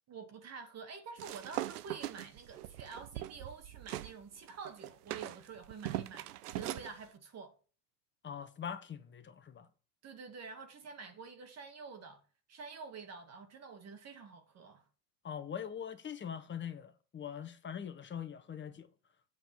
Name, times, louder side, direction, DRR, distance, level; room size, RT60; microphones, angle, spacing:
voice 1, 0.1-7.6 10.0-12.2 12.5-14.8, right 5 dB, 35° right, 1.7 m, -48 dB
sound 1, 1.2-4.1 4.5-6.9, right 14 dB, 85° right, 0.7 m, -41 dB
voice 2, 8.2-9.7 15.2-18.9, left 8 dB, 25° left, 1.4 m, -42 dB
8.0 x 5.1 x 6.0 m
hypercardioid pair, 95°, 45 cm